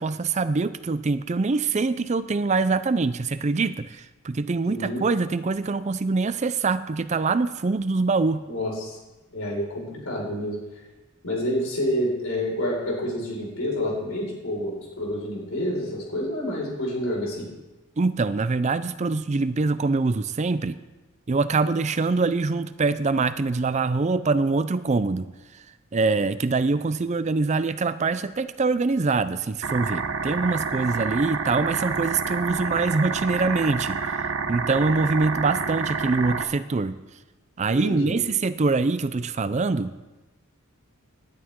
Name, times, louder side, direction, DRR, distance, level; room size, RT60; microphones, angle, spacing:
voice 1, 0.0-8.4 18.0-20.8 21.3-25.3 25.5-25.6 25.9-34.0 34.5-37.0 37.6-40.0, right 3 dB, 30° right, 13 dB, 0.4 m, -24 dB
voice 2, 4.7-5.0 8.5-9.0 9.3-10.6 11.2-17.5 37.8-38.2, equal, 70° left, -2 dB, 5.1 m, -28 dB
sound 1, 29.6-36.4, right 5 dB, 65° right, 0.9 m, -28 dB
18.5 x 11.0 x 3.7 m, 1.1 s
head